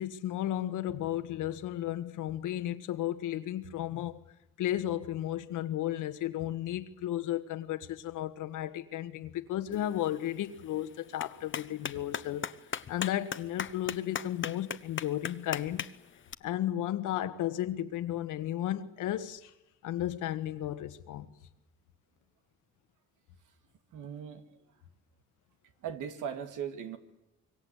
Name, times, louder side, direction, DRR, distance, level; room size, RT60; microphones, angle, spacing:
voice 1, 0.0-4.2 4.6-12.5 12.9-15.9 16.4-19.5 19.8-21.3, left 12 dB, 85° left, 1.6 m, -34 dB
Clapping, 9.7-16.3, left 7 dB, 40° left, 1.0 m, -40 dB
voice 2, 23.9-24.4 25.8-27.0, right 8 dB, 85° right, 2.3 m, -38 dB
26.0 x 23.0 x 8.3 m
cardioid pair, 90°, 30 cm